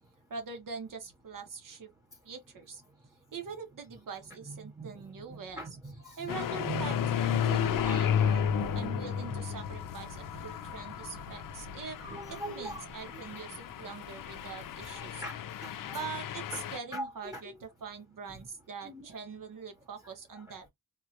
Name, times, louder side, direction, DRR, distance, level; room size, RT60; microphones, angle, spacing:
voice 1, 0.3-1.9 2.2-2.8 3.3-5.6 6.2-6.9 7.2-12.0 12.3-15.2 15.9-20.6, right 5 dB, 60° right, 1.2 m, -43 dB
voice 2, 4.5-5.0 5.3-8.6 8.9-9.4 12.0-13.8 14.8-16.0 16.5-16.6 16.9-17.6 18.8-19.2 20.3-20.4, right 2 dB, 10° right, 0.8 m, -43 dB
sound 1, 6.3-16.8, left 9 dB, 60° left, 0.5 m, -33 dB
sound 2, 7.1-15.3, right 3 dB, 85° right, 0.9 m, -50 dB
3.6 x 2.3 x 2.8 m
wide cardioid pair, 115°, 37 cm